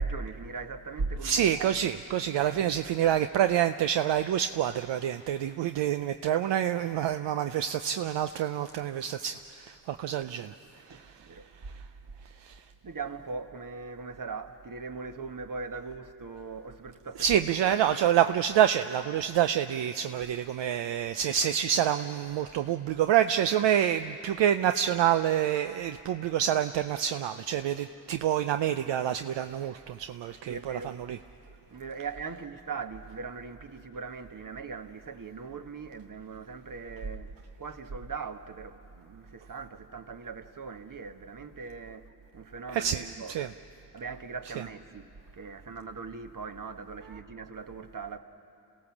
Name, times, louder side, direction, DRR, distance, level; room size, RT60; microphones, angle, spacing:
voice 1, 0.0-1.9 2.4-2.7 10.9-11.7 12.1-12.2 12.8-18.0 30.4-31.2 31.5-43.5 43.9-48.2, right 4 dB, 45° right, 1.4 m, -39 dB
voice 2, 1.2-11.8 12.4-12.6 17.2-31.2 42.7-43.5, right 10 dB, 70° right, 0.6 m, -27 dB
27.0 x 16.5 x 7.2 m
supercardioid pair, 40°, 44 cm